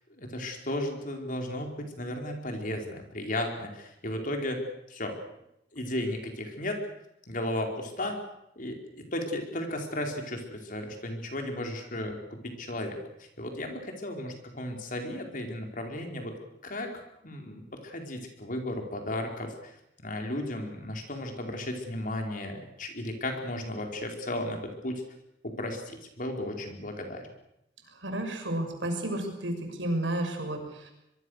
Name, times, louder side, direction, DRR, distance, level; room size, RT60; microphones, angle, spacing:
voice 1, 0.2-4.6 4.9-5.2 5.7-6.8 7.3-8.2 8.6-16.3 16.6-19.7 20.0-24.6 24.8-25.0 25.4-27.2, left 1 dB, 45° left, 3 dB, 4.6 m, -35 dB
voice 2, 28.0-30.9, right 1 dB, 80° right, 4 dB, 6.2 m, -32 dB
24.5 x 23.0 x 6.6 m, 0.81 s
head